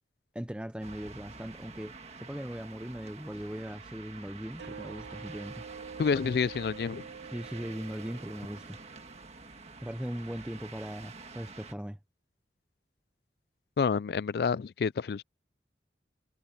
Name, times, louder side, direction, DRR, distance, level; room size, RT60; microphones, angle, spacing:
voice 1, 0.3-5.6 7.3-8.8 9.8-12.0, equal, 5° right, 0.6 m, -39 dB
sound 1, 0.8-11.7, right 4 dB, 35° right, 1.7 m, -48 dB
Tanpura note G sharp, 4.5-11.5, right 6 dB, 75° right, 0.5 m, -48 dB
voice 2, 6.0-7.0 13.8-15.2, left 5 dB, 60° left, 0.3 m, -28 dB
head